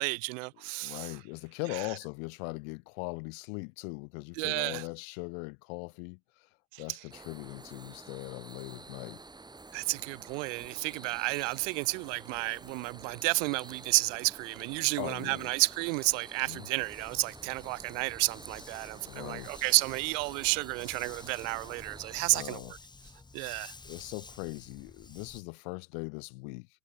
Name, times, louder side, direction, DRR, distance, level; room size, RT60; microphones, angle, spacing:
voice 1, 0.0-1.1 4.4-4.8 9.7-22.8 23.3-23.7, right 31 dB, 55° right, 1.6 m, -31 dB
voice 2, 0.8-6.5 6.8-9.2 15.0-15.5 16.5-16.7 19.1-19.6 22.3-22.7 23.8-26.7, left 39 dB, 55° left, 5.4 m, -40 dB
sound 1, 7.1-22.2, right 3 dB, 10° right, 7.2 m, -50 dB
Dog, 16.8-25.4, left 3 dB, 10° left, 3.3 m, -51 dB
supercardioid pair, 130°, 46 cm